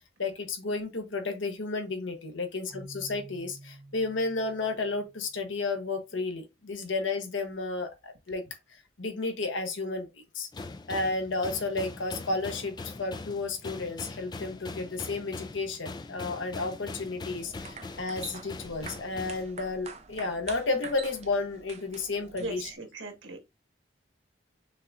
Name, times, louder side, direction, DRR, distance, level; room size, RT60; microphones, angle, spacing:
voice 1, 0.2-8.4 8.7-10.1 10.3-10.5 10.9-22.7, left 3 dB, 85° left, 1.0 m, -32 dB
Keyboard (musical), 2.7-5.6, right 1 dB, 15° right, 1.4 m, -50 dB
sound 1, 10.5-19.5, left 3 dB, 20° left, 0.3 m, -42 dB
sound 2, 17.4-22.7, right 5 dB, 35° right, 0.5 m, -45 dB
voice 2, 22.4-23.4, right 2 dB, 90° right, 1.4 m, -38 dB
5.5 x 3.6 x 2.5 m
head